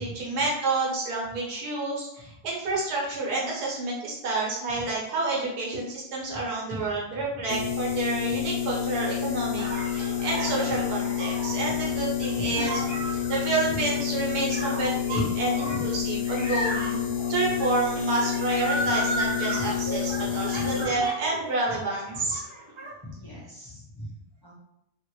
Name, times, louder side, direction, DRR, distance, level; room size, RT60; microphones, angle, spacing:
voice 1, 0.0-9.6 9.9-12.8 13.1-15.5 15.8-22.4, right 3 dB, 90° right, -3 dB, 1.5 m, -29 dB
voice 2, 6.7-7.2 7.6-7.7 10.7-10.8 11.6-11.8 12.3-12.5 13.7-13.8 15.1-15.3 15.7-15.8 19.6-19.7 20.1-20.9 21.7-21.8 22.1-22.3 23.0-24.5, left 1 dB, 25° left, -8 dB, 0.5 m, -38 dB
sound 1, 7.5-20.9, left 9 dB, 80° left, 1.0 m, -29 dB
sound 2, 9.6-21.8 22.1-22.9, right 1 dB, 35° right, 0.4 m, -34 dB
3.0 x 2.5 x 3.0 m, 0.82 s
omnidirectional pair, 1.6 m